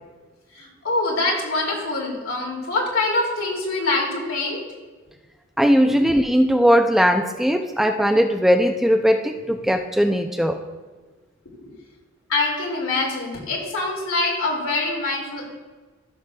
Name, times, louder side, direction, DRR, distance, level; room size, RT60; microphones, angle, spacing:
voice 1, 0.5-4.6 5.9-6.0 12.3-15.4, left 2 dB, 75° left, -2 dB, 2.5 m, -24 dB
voice 2, 5.6-10.6, equal, ahead, 4 dB, 0.3 m, -19 dB
15.0 x 6.6 x 2.3 m, 1.3 s
head